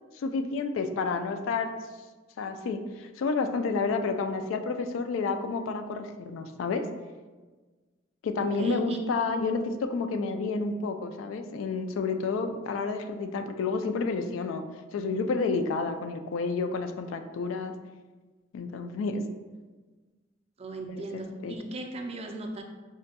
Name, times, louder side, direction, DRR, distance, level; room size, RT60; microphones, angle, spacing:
voice 1, 0.2-1.7 2.4-6.8 8.2-14.6 14.9-17.7 18.5-19.2 20.9-21.0 21.4-21.5, left 4 dB, 85° left, 7 dB, 0.3 m, -30 dB
voice 2, 8.4-9.0 20.6-22.6, right 2 dB, 30° right, 4 dB, 0.3 m, -37 dB
4.9 x 2.2 x 2.8 m, 1.3 s
head